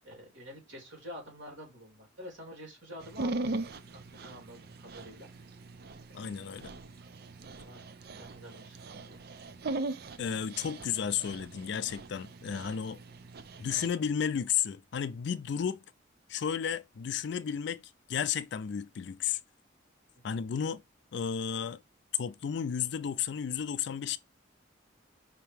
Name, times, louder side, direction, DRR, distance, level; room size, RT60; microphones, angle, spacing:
voice 1, 0.0-3.7 4.2-5.3 6.1-6.3 7.5-7.8 8.2-9.3, equal, 75° right, 3.1 m, -48 dB
Dog, 3.0-13.9, right 2 dB, 55° right, 0.5 m, -40 dB
voice 2, 6.1-6.7 10.2-13.0 13.6-15.8 16.3-17.8 18.1-19.4 20.2-20.8 21.1-21.8 22.1-24.2, left 8 dB, 60° left, 0.4 m, -33 dB
5.4 x 2.9 x 3.4 m
head